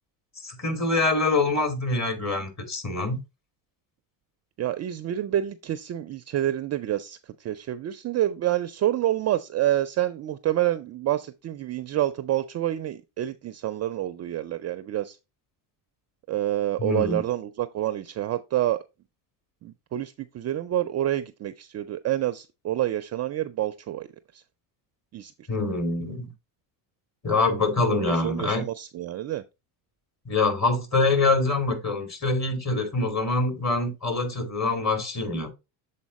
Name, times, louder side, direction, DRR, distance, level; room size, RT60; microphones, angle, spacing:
voice 1, 0.4-3.2 16.8-17.2 25.5-26.3 27.2-28.6 30.3-35.5, left 3 dB, 35° left, 2.6 m, -25 dB
voice 2, 4.6-15.2 16.3-18.8 19.6-24.1 24.3-24.4 25.1-25.3 27.9-28.0 28.2-29.4, right 13 dB, 35° right, 0.4 m, -28 dB
7.2 x 4.2 x 4.1 m
supercardioid pair, 105°, 49 cm